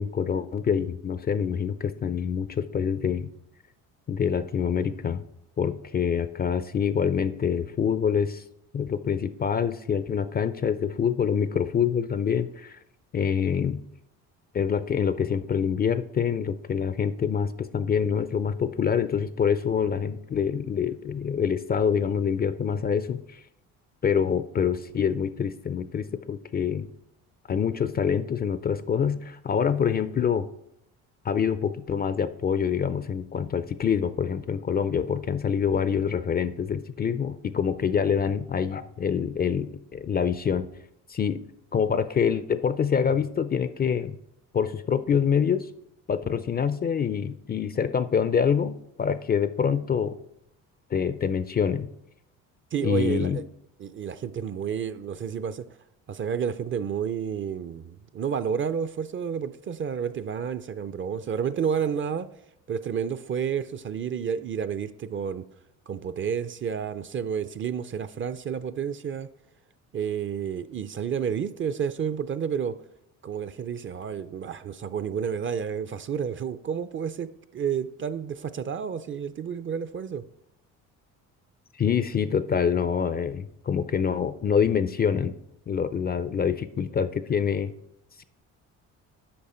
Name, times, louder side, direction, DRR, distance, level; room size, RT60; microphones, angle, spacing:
voice 1, 0.0-3.3 4.1-5.2 5.6-8.4 8.7-12.8 13.1-13.8 14.5-23.4 24.0-26.9 27.5-30.5 31.2-40.7 41.1-41.4 41.7-44.2 44.5-45.7 46.1-50.2 50.9-51.9 52.8-53.4 81.8-85.4 85.7-87.7 88.2-88.3, left 7 dB, 25° left, 0.4 m, -26 dB
voice 2, 52.7-53.4 53.8-55.7 56.1-62.3 62.7-65.4 65.9-69.3 69.9-72.8 73.2-80.2, right 7 dB, 35° right, 0.5 m, -30 dB
8.7 x 5.3 x 4.3 m
supercardioid pair, 75°, 36 cm